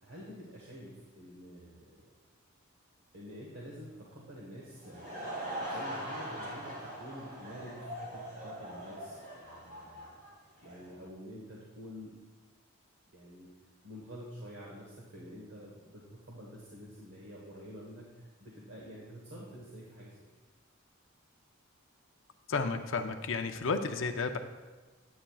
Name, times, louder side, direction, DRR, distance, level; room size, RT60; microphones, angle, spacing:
voice 1, 0.0-2.1 3.1-10.1 10.6-12.2 13.1-13.5 13.8-20.3, equal, 65° right, -4 dB, 1.2 m, -48 dB
Laughter / Crowd, 4.6-10.9, right 1 dB, 40° right, 2.4 m, -41 dB
voice 2, 22.5-24.4, left 4 dB, 60° left, 6 dB, 0.5 m, -32 dB
8.9 x 8.5 x 2.3 m, 1.3 s
head